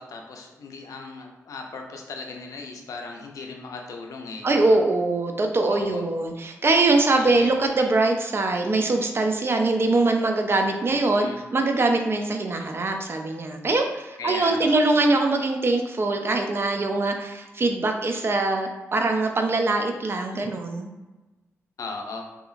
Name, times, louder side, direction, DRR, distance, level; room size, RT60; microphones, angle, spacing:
voice 1, 0.0-4.8 5.7-6.0 7.1-7.6 10.9-11.4 14.2-14.8 21.8-22.3, left 3 dB, 70° left, 2 dB, 0.5 m, -37 dB
voice 2, 4.4-20.9, right 2 dB, 40° right, 4 dB, 0.4 m, -23 dB
2.8 x 2.4 x 2.5 m, 1.1 s
supercardioid pair, 45°, 6 cm